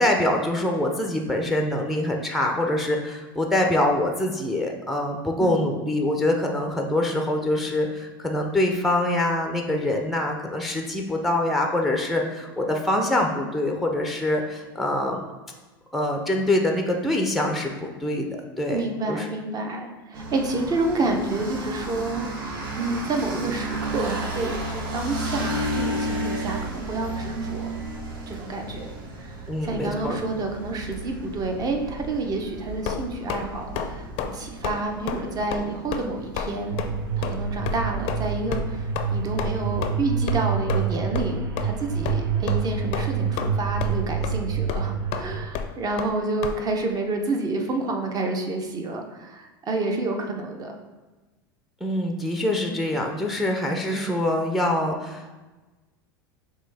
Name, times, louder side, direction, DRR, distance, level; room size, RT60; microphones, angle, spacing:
voice 1, 0.0-15.3 15.9-18.3 18.6-19.3 29.5-30.2 51.8-55.3, left 1 dB, ahead, 2 dB, 0.5 m, -24 dB
voice 2, 18.7-22.3 22.8-27.7 28.3-28.9 29.1-36.8 37.2-50.8 53.9-54.1, right 2 dB, 30° right, 4 dB, 0.8 m, -29 dB
sound 1, 20.1-40.0, right 1 dB, 70° right, 0.9 m, -34 dB
sound 2, 32.8-33.4 33.7-33.9 34.2-34.4 34.6-34.8 35.1-35.2 35.5-35.6 35.9-36.1 36.4-36.5 36.8-36.9 37.2-37.4 37.6-37.8 38.1-38.2 38.5-38.6 38.9-39.1 39.4-39.5 39.8-39.9 40.3-40.4 40.7-40.9 41.1-41.3 41.6-41.7 42.0-42.2 42.5-42.6 42.9-43.5 43.8-44.0 44.2-44.3 44.7-44.8 45.1-45.2 45.5-45.7 46.0-46.1 46.4-46.5, left 8 dB, 50° left, 0.4 m, -29 dB
sound 3, 36.7-45.5, right 6 dB, 90° right, 0.5 m, -27 dB
6.0 x 2.3 x 3.4 m, 1.2 s
hypercardioid pair, 95°, 12 cm